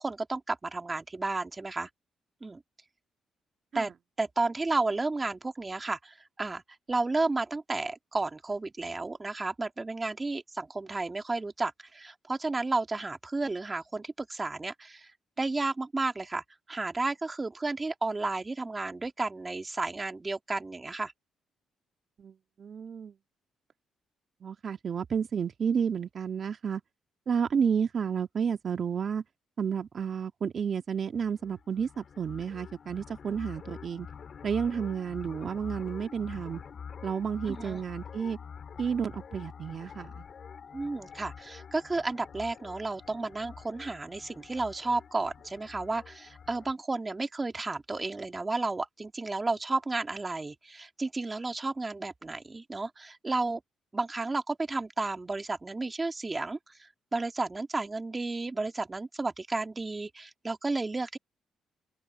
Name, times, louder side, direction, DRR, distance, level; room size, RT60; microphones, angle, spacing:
voice 1, 0.0-1.9 2.4-2.6 3.7-3.9 4.2-6.6 6.9-15.1 15.4-21.1 37.5-37.8 40.7-53.6 53.9-61.2, right 3 dB, 20° right, 2.5 m, -32 dB
voice 2, 22.2-23.1 24.4-26.8 27.3-29.2 29.6-34.1 34.4-36.6 37.0-38.4 38.8-40.2, right 7 dB, 50° right, 2.0 m, -31 dB
sound 1, 31.2-46.7, left 6 dB, 50° left, 4.6 m, -46 dB
cardioid pair, 90°, 0 cm